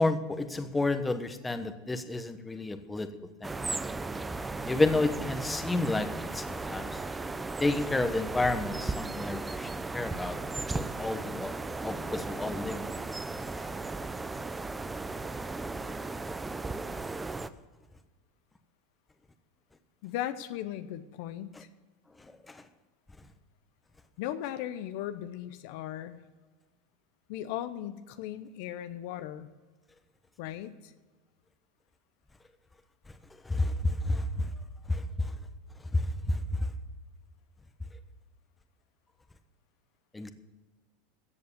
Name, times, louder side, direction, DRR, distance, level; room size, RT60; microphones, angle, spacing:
voice 1, 0.0-3.1 3.4-3.5 4.6-7.0 7.6-10.4 10.7-11.5 11.8-12.8 15.8-16.0 22.5-22.6 33.4-34.5 34.9-35.3 35.9-36.7 40.1-40.3, left 2 dB, 10° left, 9 dB, 1.1 m, -30 dB
sound 1, 3.4-17.5, right 3 dB, 10° right, 0.6 m, -36 dB
voice 2, 20.0-21.7 24.2-26.2 27.3-29.5 30.4-30.9, left 12 dB, 65° left, 11 dB, 0.8 m, -37 dB
14.0 x 7.8 x 6.8 m, 1.3 s
supercardioid pair, 120°, 0 cm